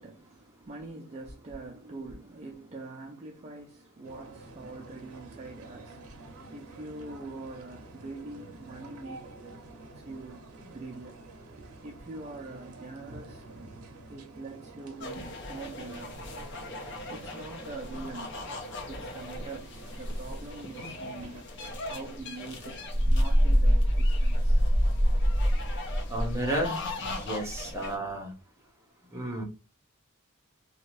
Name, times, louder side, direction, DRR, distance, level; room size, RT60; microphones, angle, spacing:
voice 1, 0.0-9.4 9.9-11.4 11.8-16.7 17.1-18.4 18.8-25.4, right 3 dB, 30° right, 0.4 m, -44 dB
sound 1, 4.0-21.4, right 2 dB, 75° right, 0.6 m, -48 dB
sound 2, 15.0-28.0, equal, 55° left, 0.7 m, -29 dB
voice 2, 26.1-26.7 27.0-28.3 29.1-29.4, right 1 dB, 15° right, 0.8 m, -32 dB
2.7 x 2.2 x 3.0 m
head